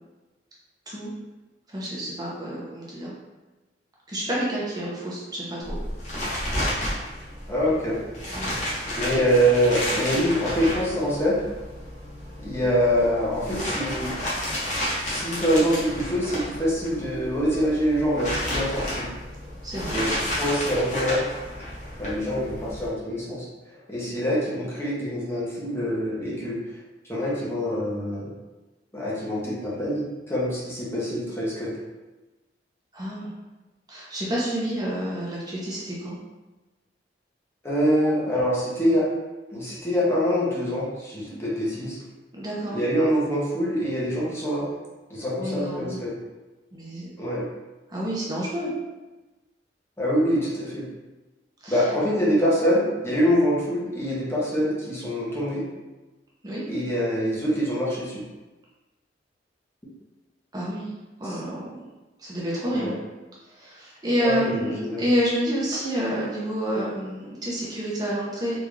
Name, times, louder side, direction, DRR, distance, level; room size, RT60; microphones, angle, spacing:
voice 1, 1.7-3.1 4.1-5.8 8.3-8.5 19.6-20.0 32.9-33.3 33.9-36.2 41.3-41.4 42.3-42.8 45.4-46.0 46.7-47.1 47.9-48.7 51.6-51.9 56.4-56.6 60.5-60.9 61.2-61.8 62.2-63.0 63.5-68.6, equal, 20° right, -6 dB, 0.7 m, -29 dB
sound 1, 5.6-22.9, left 1 dB, 45° left, 0.9 m, -31 dB
voice 2, 7.5-8.0 8.9-11.4 12.4-14.1 15.0-19.1 19.9-21.2 22.0-23.5 23.9-26.6 27.1-28.3 28.9-31.7 37.6-39.1 39.5-42.0 42.7-44.7 45.1-46.1 47.2-47.4 50.0-50.8 51.7-55.6 56.7-58.2 62.7-62.9 64.2-65.0, equal, 15° left, -7 dB, 0.8 m, -25 dB
3.6 x 2.5 x 3.1 m, 1.1 s
head